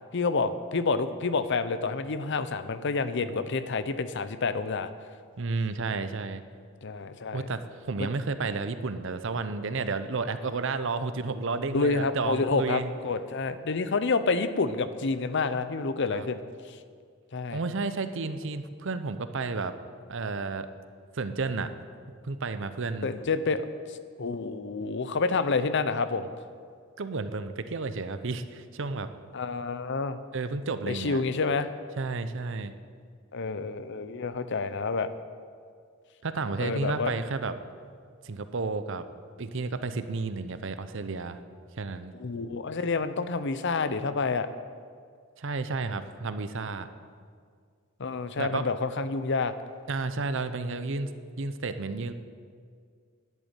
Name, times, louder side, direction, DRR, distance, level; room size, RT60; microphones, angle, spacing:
voice 1, 0.1-4.9 6.8-7.5 8.0-8.1 11.7-16.4 17.3-17.6 23.0-23.7 24.2-26.3 29.3-30.2 30.9-31.7 33.3-35.1 36.6-37.1 42.2-44.5 48.0-49.5, left 4 dB, 60° left, 12 dB, 0.7 m, -28 dB
voice 2, 5.4-6.4 7.3-12.9 16.1-16.3 17.5-19.7 20.1-20.7 21.1-21.7 22.2-23.1 27.0-29.1 30.3-31.2 32.0-32.7 36.2-37.5 38.2-39.0 39.4-41.4 41.8-42.2 45.4-46.9 48.4-48.6 49.9-52.1, right 3 dB, 65° right, 11 dB, 0.7 m, -32 dB
11.0 x 8.3 x 8.9 m, 2.1 s
head